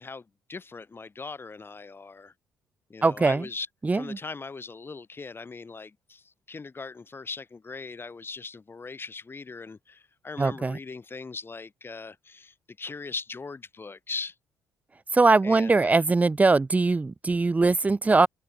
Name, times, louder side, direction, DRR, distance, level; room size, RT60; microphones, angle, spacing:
voice 1, 0.0-2.3 2.9-3.7 3.9-14.3 15.4-16.0, left 4 dB, 30° left, 2.1 m, -40 dB
voice 2, 3.0-3.5 3.8-4.2 10.4-10.8 15.1-18.3, right 3 dB, 20° right, 0.5 m, -21 dB
open air
hypercardioid pair, 55°, 7 cm